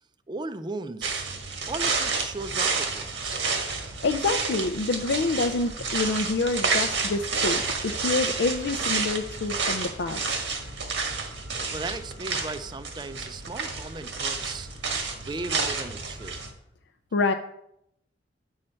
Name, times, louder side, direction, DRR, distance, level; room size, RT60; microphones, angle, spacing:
voice 1, 0.3-1.3 1.7-3.5 11.7-14.7 15.1-16.4, right 3 dB, 25° right, 12 dB, 0.4 m, -36 dB
sound 1, 1.0-16.5, right 4 dB, 85° right, 1.5 m, -30 dB
voice 2, 4.0-10.3 17.1-17.3, left 3 dB, 70° left, 7 dB, 0.4 m, -27 dB
9.6 x 6.4 x 4.4 m, 0.80 s
head